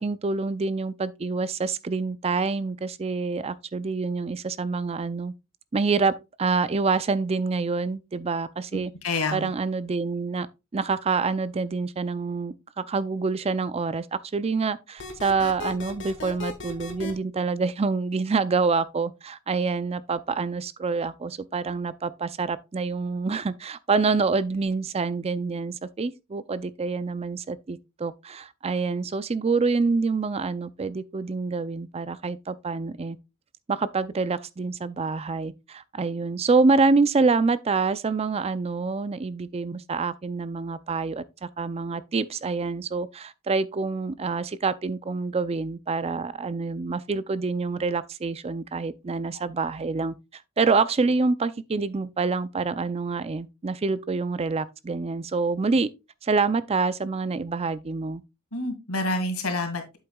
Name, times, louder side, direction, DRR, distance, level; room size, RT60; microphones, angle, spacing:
voice 1, 0.0-5.3 5.7-6.1 6.4-8.9 9.3-10.5 10.7-33.2 33.7-55.9 56.2-58.2, right 4 dB, 30° right, 0.4 m, -26 dB
voice 2, 8.7-9.5 58.5-60.0, left 2 dB, 85° left, 2.0 m, -28 dB
sound 1, 15.0-17.1, left 3 dB, 55° left, 1.5 m, -35 dB
8.1 x 7.8 x 2.3 m
head